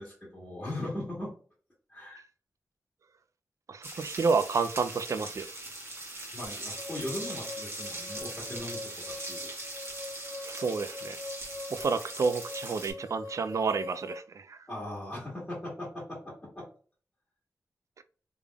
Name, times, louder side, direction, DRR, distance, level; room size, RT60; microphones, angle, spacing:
voice 1, 0.0-1.3 1.9-2.3 6.3-9.9 14.7-16.7, left 1 dB, 15° left, 1.8 m, -39 dB
voice 2, 3.7-5.5 10.4-11.2 11.7-14.6 18.0-18.1, right 5 dB, 60° right, 0.4 m, -30 dB
sound 1, 3.8-12.9, right 2 dB, 45° right, 1.4 m, -41 dB
sound 2, 6.8-14.2, left 3 dB, 60° left, 0.7 m, -43 dB
3.4 x 3.4 x 2.3 m
wide cardioid pair, 70°, 6 cm